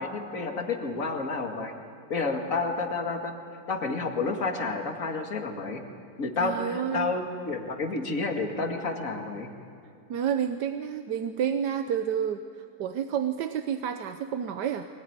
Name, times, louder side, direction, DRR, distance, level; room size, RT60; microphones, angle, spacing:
voice 1, 0.0-1.7 2.1-3.3 3.7-5.8 6.2-9.5, left 3 dB, 50° left, 3 dB, 2.5 m, -30 dB
voice 2, 6.4-7.1 10.1-12.4 12.8-14.8, right 8 dB, 75° right, 8 dB, 1.4 m, -29 dB
24.0 x 19.5 x 9.5 m, 2.5 s
omnidirectional pair, 1.9 m